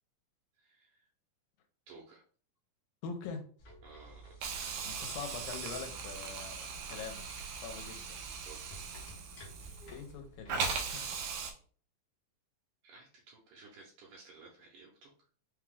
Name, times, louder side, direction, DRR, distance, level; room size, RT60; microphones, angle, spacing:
voice 1, 0.6-1.0 1.9-2.2 3.8-4.4 7.8-8.8 12.8-15.3, right 4 dB, 75° right, -3 dB, 2.1 m, -56 dB
voice 2, 3.0-3.4 4.8-8.2 9.9-11.0, left 5 dB, 85° left, 4 dB, 2.5 m, -44 dB
sound 1, 3.6-11.0, equal, 65° left, 1.3 m, -54 dB
Hiss, 4.4-10.1 10.5-11.5, right 5 dB, 90° right, 1.5 m, -39 dB
5.5 x 2.3 x 3.5 m, 0.43 s
omnidirectional pair, 4.0 m